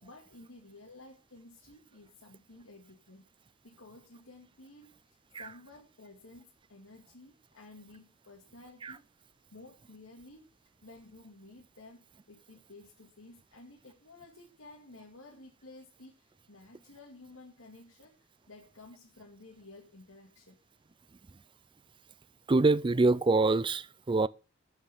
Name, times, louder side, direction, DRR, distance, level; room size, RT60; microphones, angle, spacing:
voice 1, 0.0-3.3 3.6-9.0 9.5-10.5 10.8-20.6, left 2 dB, 85° left, 2.2 m, -53 dB
voice 2, 22.5-24.3, right 3 dB, 25° right, 0.4 m, -25 dB
8.8 x 8.1 x 6.2 m
head